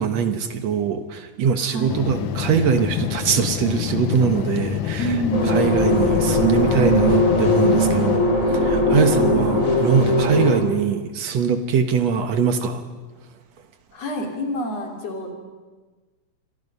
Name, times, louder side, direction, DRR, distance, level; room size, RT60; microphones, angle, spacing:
voice 1, 0.0-5.1 5.5-12.8, right 6 dB, 65° right, 8 dB, 2.3 m, -22 dB
voice 2, 1.6-2.0 5.0-5.8 8.9-9.2 13.9-15.3, right 1 dB, 55° left, 2 dB, 4.3 m, -27 dB
sound 1, 1.9-8.2, left 9 dB, 85° left, 2.6 m, -27 dB
sound 2, 5.3-10.6, left 1 dB, 25° left, 4.0 m, -19 dB
27.0 x 24.0 x 5.5 m, 1.3 s
omnidirectional pair, 3.4 m